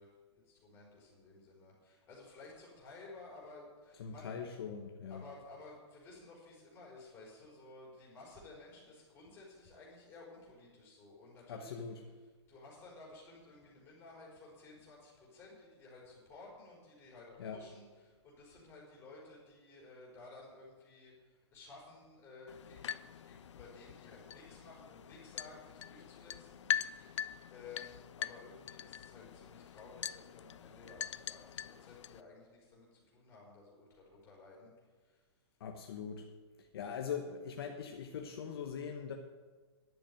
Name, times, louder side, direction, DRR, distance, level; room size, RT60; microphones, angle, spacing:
voice 1, 0.0-4.4 5.1-11.8 12.5-35.4, left 3 dB, 15° left, -4 dB, 4.2 m, -55 dB
voice 2, 4.0-5.3 11.5-12.0 17.4-17.6 35.6-36.3 36.6-39.1, left 7 dB, 55° left, 3 dB, 1.1 m, -42 dB
sound 1, 22.5-32.2, left 9 dB, 80° left, 0.5 m, -43 dB
10.5 x 7.0 x 9.2 m, 1.4 s
hypercardioid pair, 165°, 15 cm